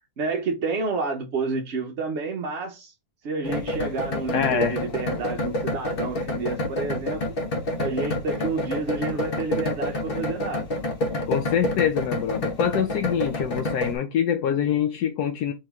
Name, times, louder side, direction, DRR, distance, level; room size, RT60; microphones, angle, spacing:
voice 1, 0.2-2.9 3.2-7.2 7.8-10.7, right 3 dB, 55° right, 0.8 m, -29 dB
sound 1, 3.4-14.0, left 1 dB, 40° left, 1.0 m, -28 dB
voice 2, 4.3-4.8 11.3-15.5, left 8 dB, 75° left, 1.1 m, -25 dB
4.4 x 3.1 x 3.5 m
omnidirectional pair, 1.8 m